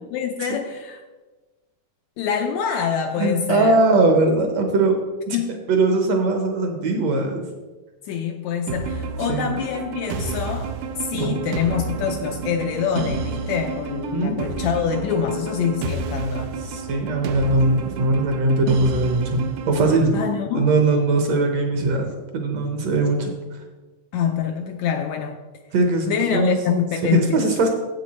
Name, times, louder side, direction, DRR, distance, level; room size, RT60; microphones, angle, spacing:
voice 1, 0.1-1.0 2.2-3.8 5.3-5.7 8.1-16.6 20.1-20.7 24.1-25.4 26.1-27.4, left 7 dB, 80° left, 4 dB, 1.7 m, -25 dB
voice 2, 3.2-5.0 5.3-5.4 5.7-7.4 9.3-9.5 11.1-11.5 14.1-14.4 16.6-20.2 20.5-22.1 22.3-23.3 25.7-26.1 26.3-26.6 27.0-27.7, right 2 dB, 65° right, 4 dB, 1.9 m, -20 dB
sound 1, 8.7-20.1, right 4 dB, 85° right, 2.3 m, -30 dB
9.5 x 7.8 x 4.2 m, 1.2 s
omnidirectional pair, 3.7 m